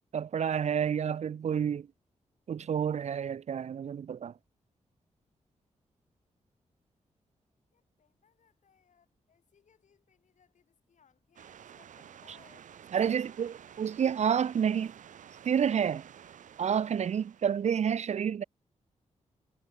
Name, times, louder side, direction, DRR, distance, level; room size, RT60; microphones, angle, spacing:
voice 1, 0.1-1.9 2.5-4.3 12.9-14.9 15.4-16.0 16.6-18.4, right 8 dB, 65° right, 0.7 m, -29 dB
voice 2, 7.7-14.1, left 7 dB, 75° left, 7.7 m, -67 dB
sound 1, 11.4-17.7, right 9 dB, 85° right, 2.2 m, -52 dB
cardioid pair, 70°, 13 cm